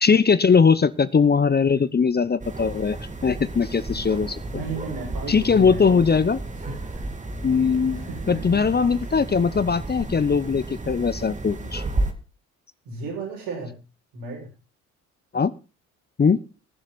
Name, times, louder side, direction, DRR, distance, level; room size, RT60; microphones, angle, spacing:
voice 1, 0.0-3.0 3.2-4.4 5.3-6.4 7.4-11.8 15.3-15.5 16.2-16.4, left 5 dB, 25° left, 17 dB, 0.8 m, -20 dB
sound 1, 2.4-12.1, right 2 dB, 20° right, 2.3 m, -32 dB
voice 2, 4.5-6.1 6.6-7.0 8.0-8.6 12.9-13.7 14.1-14.5, right 3 dB, 75° right, -1 dB, 6.9 m, -34 dB
22.0 x 7.5 x 4.2 m, 0.31 s
hypercardioid pair, 50°, 40 cm